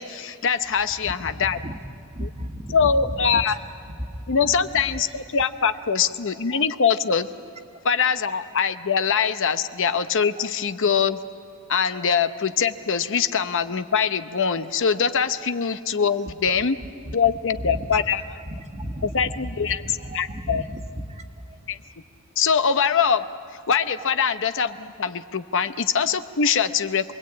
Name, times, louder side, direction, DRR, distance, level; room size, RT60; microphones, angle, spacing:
voice 1, 0.0-1.6 2.2-2.3 2.7-3.5 4.3-7.3 7.8-11.2 11.7-16.8 17.1-18.2 19.1-19.8 20.1-20.6 21.7-21.8 22.4-23.2 23.5-27.1, left 6 dB, 60° left, 0.8 m, -23 dB
voice 2, 1.0-1.8 2.1-3.6 4.0-4.8 5.6-5.7 6.5-6.6 9.5-9.6 10.4-10.5 11.9-12.1 15.3-15.4 16.1-16.2 17.0-17.1 17.6-18.0 18.4-21.6 24.0-24.2 24.6-24.7 25.5-25.6, equal, 30° right, 1.5 m, -35 dB
27.5 x 21.5 x 8.7 m
head